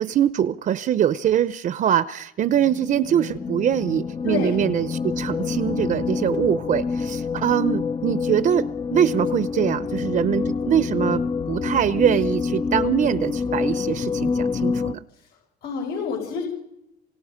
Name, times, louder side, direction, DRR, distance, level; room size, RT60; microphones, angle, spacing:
voice 1, 0.0-15.0, right 10 dB, 50° right, 0.8 m, -23 dB
sound 1, 2.4-14.9, left 5 dB, 30° left, 0.8 m, -27 dB
voice 2, 4.2-4.6 15.1-15.2 15.6-16.4, left 4 dB, 75° left, 5.6 m, -28 dB
27.5 x 25.5 x 5.2 m
cardioid pair, 110°, 17 cm